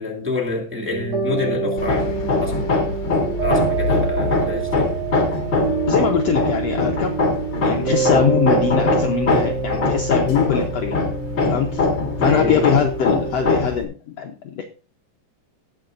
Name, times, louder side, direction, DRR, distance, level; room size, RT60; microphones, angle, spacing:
voice 1, 0.0-2.7 3.4-4.9 12.3-12.7, left 2 dB, 5° right, 2.2 m, -27 dB
sound 1, 0.9-13.7, right 6 dB, 70° right, 4.1 m, -26 dB
Hammer, 1.8-13.8, left 3 dB, 40° left, 2.2 m, -22 dB
voice 2, 5.9-7.1 7.6-11.0 11.4-11.9 12.2-14.6, left 8 dB, 65° left, 1.7 m, -22 dB
19.0 x 7.0 x 2.6 m
omnidirectional pair, 3.7 m